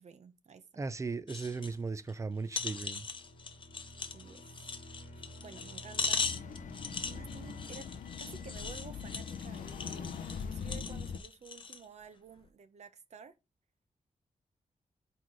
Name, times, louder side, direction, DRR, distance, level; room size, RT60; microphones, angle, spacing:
voice 1, 0.0-0.6 4.1-5.1 5.4-6.3 7.0-7.9 8.2-13.4, right 5 dB, 60° right, 0.8 m, -52 dB
voice 2, 0.8-3.1, right 4 dB, 25° right, 0.5 m, -37 dB
sound 1, 1.3-1.7 2.1-2.2 2.5-11.8 12.4-12.5, left 5 dB, 40° left, 0.7 m, -39 dB
sound 2, 2.3-9.5, equal, 70° left, 1.2 m, -52 dB
sound 3, 6.2-11.2, left 6 dB, 90° left, 0.6 m, -42 dB
4.6 x 4.1 x 4.9 m
wide cardioid pair, 145°, 13 cm